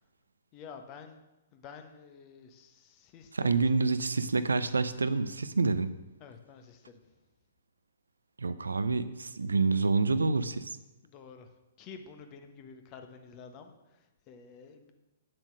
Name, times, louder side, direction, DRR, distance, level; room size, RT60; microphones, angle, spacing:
voice 1, 0.5-1.2 1.5-3.9 6.2-7.0 11.0-11.5 11.8-14.9, left 6 dB, 30° left, 6 dB, 1.2 m, -50 dB
voice 2, 3.3-5.9 8.4-10.8, right 3 dB, 75° right, 13 dB, 0.6 m, -27 dB
9.1 x 7.6 x 6.2 m, 1.0 s
figure-of-eight pair, 115°, 0 cm